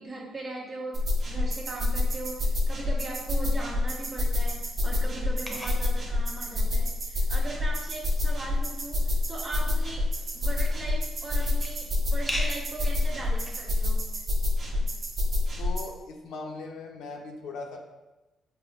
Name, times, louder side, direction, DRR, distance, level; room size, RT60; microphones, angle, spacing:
voice 1, 0.0-14.2 14.8-14.9, right 2 dB, 25° right, -4 dB, 1.1 m, -39 dB
sound 1, 0.9-15.8, left 2 dB, 45° right, 0.7 m, -27 dB
sound 2, 5.4-13.9, equal, 10° left, 0.6 m, -42 dB
voice 2, 15.6-17.8, left 3 dB, 80° left, 1 dB, 0.5 m, -39 dB
5.3 x 2.0 x 2.3 m, 1.0 s
cardioid pair, 90°, 0 cm